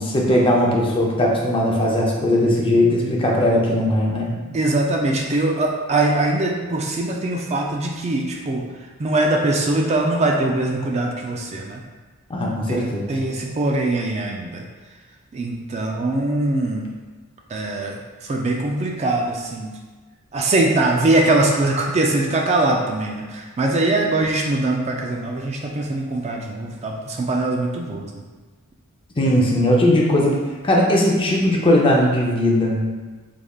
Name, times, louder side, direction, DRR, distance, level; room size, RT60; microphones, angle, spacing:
voice 1, 0.0-4.3 12.3-13.1 29.2-30.4 30.6-32.9, left 1 dB, 25° left, -2 dB, 0.5 m, -18 dB
voice 2, 4.4-8.6 9.0-11.8 12.7-14.6 15.3-16.9 17.5-19.7 20.3-28.2, right 2 dB, 30° right, 0 dB, 0.3 m, -22 dB
3.6 x 3.2 x 2.3 m, 1.3 s
head